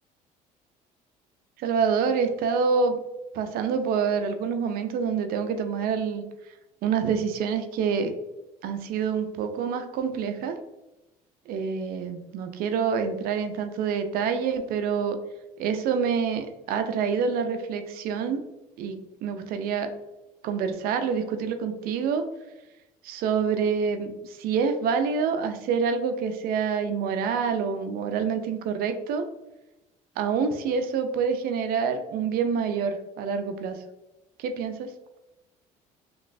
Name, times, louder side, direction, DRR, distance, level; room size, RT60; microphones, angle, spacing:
voice 1, 1.6-3.0 3.3-6.2 6.8-8.1 8.6-10.5 11.5-15.2 15.6-18.4 18.8-19.9 20.4-22.2 23.0-29.3 30.2-33.8 34.4-34.9, right 6 dB, 65° right, 7 dB, 0.5 m, -27 dB
3.0 x 3.0 x 2.6 m, 0.99 s
cardioid pair, 100°, 16 cm